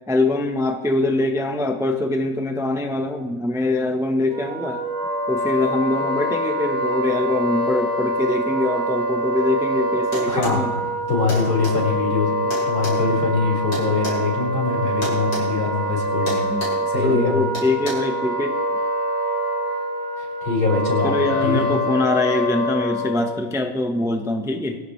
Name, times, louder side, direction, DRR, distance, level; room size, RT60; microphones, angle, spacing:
voice 1, 0.1-4.8 5.3-10.7 16.5-16.7 16.9-18.6 21.0-24.8, left 2 dB, ahead, 3 dB, 0.9 m, -23 dB
Wind instrument woodwind instrument, 4.3-23.4, equal, 50° right, 2.2 m, -25 dB
sound 1, 10.1-10.6 11.3-11.8 12.5-14.2 15.0-15.5 15.7-15.9 16.3-16.8 17.5-17.9, left 1 dB, 65° left, 7.7 m, -31 dB
voice 2, 10.3-10.8 11.1-16.5 16.9-17.4 20.2-21.6, left 4 dB, 80° left, -3 dB, 6.4 m, -23 dB
23.0 x 17.5 x 3.4 m, 1.2 s
omnidirectional pair, 2.2 m